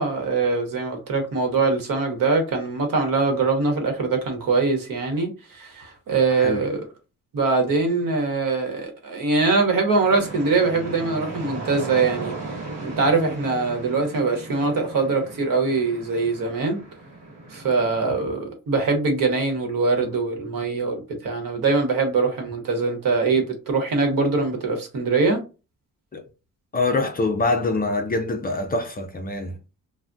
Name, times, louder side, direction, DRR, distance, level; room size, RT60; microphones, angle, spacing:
voice 1, 0.0-6.8 7.3-12.3 12.8-16.8 17.5-25.4, right 4 dB, 70° right, 1.0 m, -23 dB
voice 2, 6.3-6.7 26.1-26.2 26.7-29.6, left 3 dB, 25° left, 0.4 m, -24 dB
sound 1, 10.1-18.2, right 2 dB, 50° right, 1.3 m, -36 dB
3.3 x 2.1 x 2.6 m
wide cardioid pair, 150°, 34 cm